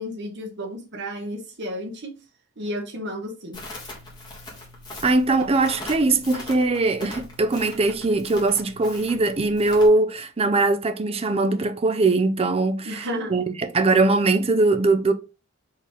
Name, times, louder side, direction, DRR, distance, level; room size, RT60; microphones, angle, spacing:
voice 1, 0.0-2.2 2.6-3.6 12.8-13.3, equal, 60° right, 1.2 m, -32 dB
Crackle, 3.5-9.9, left 2 dB, 20° left, 1.5 m, -40 dB
voice 2, 5.0-15.1, right 3 dB, 30° right, 0.5 m, -21 dB
4.5 x 3.3 x 3.4 m
head